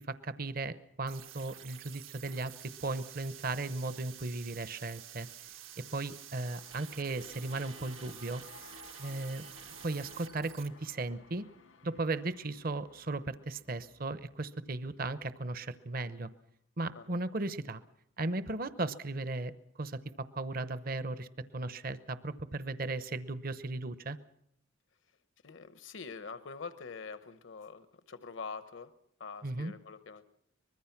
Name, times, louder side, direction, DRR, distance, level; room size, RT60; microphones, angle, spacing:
voice 1, 0.1-2.5 2.8-5.3 5.9-8.4 9.0-9.5 9.8-11.4 11.8-16.3 16.8-17.8 18.2-19.5 19.8-21.3 21.5-24.2 29.4-29.7, right 2 dB, 45° right, 14 dB, 0.9 m, -36 dB
sound 1, 1.1-10.7, right 11 dB, 80° right, 1.5 m, -50 dB
sound 2, 5.4-15.8 16.1-16.2, left 4 dB, 85° left, 2.0 m, -57 dB
voice 2, 25.4-28.9 29.2-30.2, left 5 dB, 70° left, 12 dB, 1.0 m, -45 dB
24.5 x 21.0 x 5.9 m, 0.75 s
head